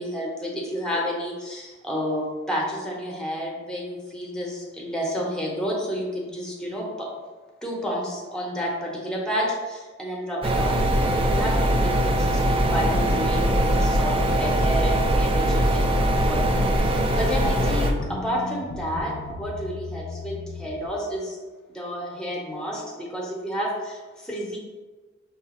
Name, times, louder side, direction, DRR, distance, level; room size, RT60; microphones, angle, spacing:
voice 1, 0.0-7.1 7.6-16.6 16.9-21.4 21.7-24.6, equal, 5° left, -3 dB, 0.7 m, -30 dB
sound 1, 10.4-17.9, right 1 dB, 25° right, 0.3 m, -22 dB
sound 2, 10.8-15.8 16.1-20.9, left 2 dB, 55° left, 0.4 m, -34 dB
5.5 x 2.4 x 2.9 m, 1.3 s
head